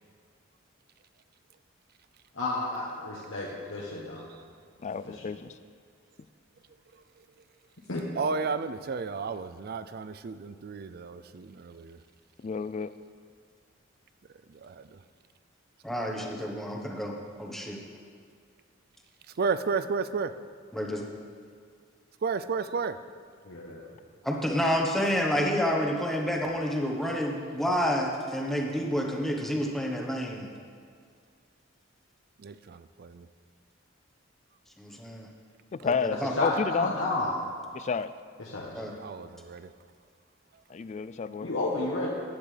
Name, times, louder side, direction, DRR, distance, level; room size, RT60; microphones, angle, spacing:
voice 1, 2.3-4.3 5.0-5.3 7.9-8.0 36.1-37.4 38.4-38.9 41.4-42.1, left 2 dB, 80° left, -4 dB, 1.2 m, -31 dB
voice 2, 4.8-5.5 12.4-12.9 35.7-36.9 37.7-38.1 40.7-41.5, left 5 dB, 35° left, 14 dB, 0.3 m, -30 dB
voice 3, 8.2-12.0 14.6-14.8 19.4-20.3 22.2-23.0 32.4-33.3 39.0-39.7, right 5 dB, 50° right, 12 dB, 0.4 m, -32 dB
voice 4, 15.8-17.8 20.7-21.0 24.3-30.5 34.8-35.3 35.8-36.3 38.7-38.9, equal, ahead, -1 dB, 1.1 m, -29 dB
14.5 x 9.7 x 3.4 m, 2.2 s
head